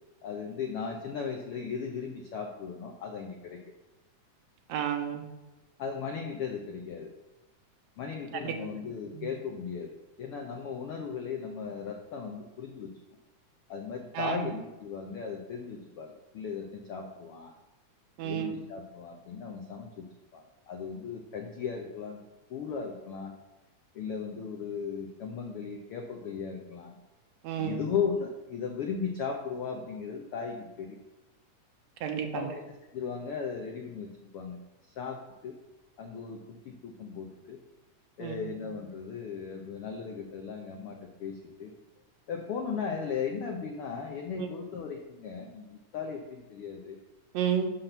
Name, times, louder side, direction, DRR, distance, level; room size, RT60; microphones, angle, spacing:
voice 1, 0.2-3.6 5.8-7.1 8.0-12.9 13.7-17.5 18.2-20.0 20.3-22.2 22.5-23.3 23.9-27.0 27.6-31.0 32.3-32.6 32.9-34.6 34.8-35.6 36.0-37.6 38.2-41.7 42.3-47.0, left 6 dB, 85° left, 2 dB, 1.2 m, -37 dB
voice 2, 4.7-5.3 8.4-8.5 9.1-9.3 14.1-14.4 18.2-18.5 27.4-27.8 32.0-32.5 38.2-38.4 44.4-44.5 47.3-47.7, right 8 dB, 70° right, 5 dB, 1.9 m, -31 dB
5.9 x 5.8 x 6.6 m, 1.0 s
omnidirectional pair, 3.6 m